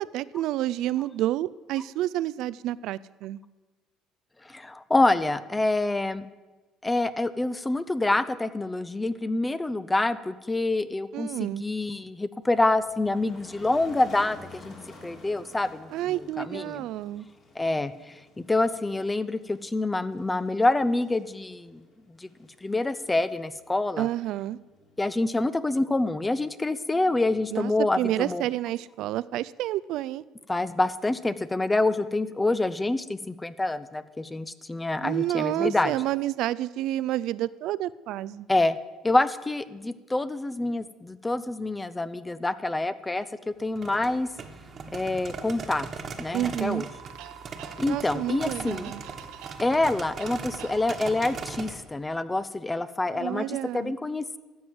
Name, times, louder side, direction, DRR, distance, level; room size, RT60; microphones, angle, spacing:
voice 1, 0.0-3.4 11.1-11.6 15.9-17.3 24.0-24.6 27.5-27.7 28.0-30.2 35.0-38.5 46.3-46.8 47.9-49.0 53.1-53.9, right 14 dB, 70° right, 19 dB, 0.4 m, -29 dB
voice 2, 4.5-6.3 6.8-14.7 15.0-16.9 17.6-21.8 22.2-22.3 22.6-24.1 25.0-28.4 30.5-35.9 38.5-38.8 39.0-44.3 44.9-45.9 46.2-46.9 47.8-48.9 49.6-54.4, left 2 dB, 10° left, 14 dB, 0.5 m, -27 dB
Motor vehicle (road), 12.4-25.1, left 2 dB, 45° left, 3.3 m, -51 dB
sound 1, 43.6-51.8, right 5 dB, 35° right, 1.3 m, -40 dB
sound 2, 46.5-51.6, right 9 dB, 85° right, 1.0 m, -45 dB
13.0 x 7.6 x 7.9 m, 1.2 s
cardioid pair, 125°, 0 cm